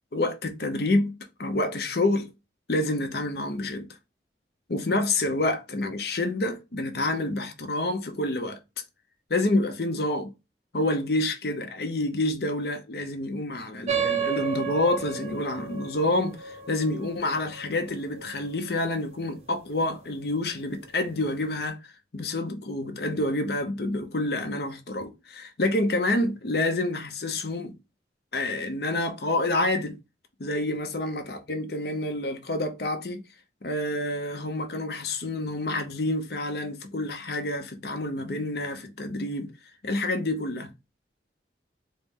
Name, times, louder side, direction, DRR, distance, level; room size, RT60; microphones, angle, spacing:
voice 1, 0.1-2.3 2.7-3.9 4.7-8.6 9.3-10.3 10.7-27.7 28.3-30.0 30.4-33.2 33.6-39.5 39.8-40.7, left 2 dB, 60° left, 0.7 m, -28 dB
sound 1, 13.9-18.8, right 7 dB, 35° right, 0.6 m, -32 dB
4.1 x 2.1 x 3.5 m
head